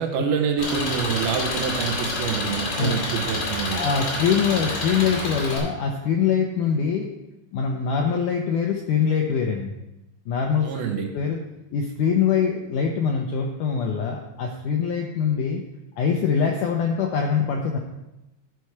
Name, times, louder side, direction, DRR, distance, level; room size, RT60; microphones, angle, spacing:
voice 1, 0.0-3.9 10.6-11.1, right 6 dB, 75° right, 4 dB, 2.7 m, -26 dB
Engine, 0.6-5.6, left 2 dB, 55° left, 3.9 m, -28 dB
voice 2, 3.7-7.1 7.5-9.7 10.3-11.4 11.7-15.6 16.0-17.8, left 6 dB, 80° left, 1 dB, 1.8 m, -23 dB
13.0 x 5.9 x 4.6 m, 0.93 s
omnidirectional pair, 4.6 m